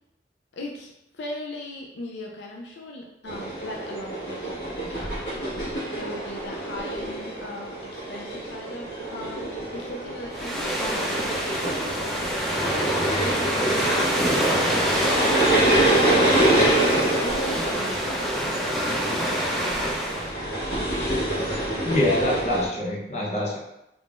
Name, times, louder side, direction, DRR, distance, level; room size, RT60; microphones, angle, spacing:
voice 1, 0.5-12.2 12.6-14.2 14.6-20.8, left 1 dB, 80° left, 0 dB, 0.4 m, -39 dB
sound 1, 3.3-22.7, right 1 dB, 65° left, 1.5 m, -26 dB
sound 2, 10.3-20.3, equal, ahead, 0.5 m, -26 dB
voice 2, 21.9-23.6, left 1 dB, 40° left, -4 dB, 0.8 m, -24 dB
3.6 x 3.1 x 2.5 m, 0.86 s
head